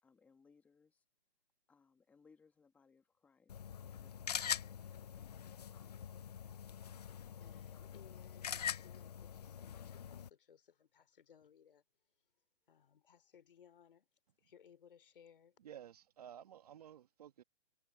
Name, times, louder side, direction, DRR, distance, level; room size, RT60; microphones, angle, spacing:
voice 1, 0.0-1.0 1.7-5.6, left 5 dB, 5° left, 2.0 m, -69 dB
sound 1, 3.5-10.3, left 8 dB, 40° left, 0.7 m, -44 dB
voice 2, 7.4-11.8 12.7-14.1 14.4-15.6, left 8 dB, 55° left, 3.2 m, -64 dB
voice 3, 15.6-17.4, right 10 dB, 35° right, 1.5 m, -54 dB
hypercardioid pair, 165°, 32 cm